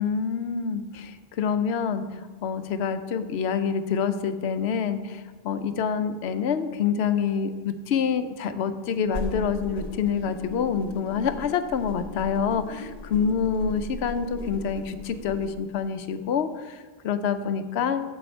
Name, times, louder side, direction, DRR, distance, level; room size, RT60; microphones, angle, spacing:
voice 1, 0.0-18.0, left 6 dB, 75° left, 11 dB, 0.8 m, -27 dB
sound 1, 9.0-15.5, left 2 dB, 40° left, 1.9 m, -38 dB
7.8 x 7.2 x 4.3 m, 1.4 s
omnidirectional pair, 1.1 m